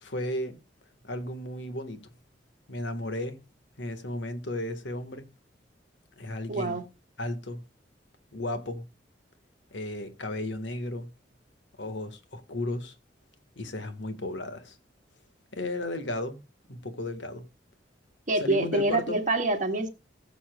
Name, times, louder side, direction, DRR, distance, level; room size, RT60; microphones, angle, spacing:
voice 1, 0.0-0.6 1.0-2.0 2.7-3.4 3.8-5.3 6.2-6.8 7.2-7.6 8.3-8.9 9.7-11.1 11.8-12.9 13.6-14.7 15.5-16.4 16.7-17.4 18.4-19.2, left 1 dB, 85° left, 1.5 m, -34 dB
voice 2, 6.5-6.8 18.3-19.9, right 2 dB, 45° right, 1.7 m, -26 dB
19.5 x 7.1 x 2.3 m
head